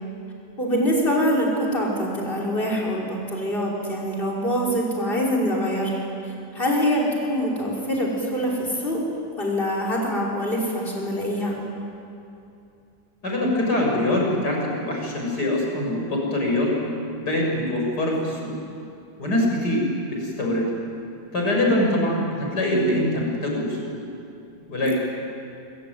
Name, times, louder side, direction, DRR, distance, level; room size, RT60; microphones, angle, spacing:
voice 1, 0.6-9.0 9.4-11.6, equal, 30° left, -2 dB, 5.8 m, -24 dB
voice 2, 13.2-16.7 17.2-18.5 19.2-19.8 20.2-20.7 21.3-24.0 24.7-25.0, left 1 dB, 75° left, -1 dB, 7.2 m, -23 dB
25.5 x 24.0 x 9.5 m, 2.6 s
omnidirectional pair, 1.8 m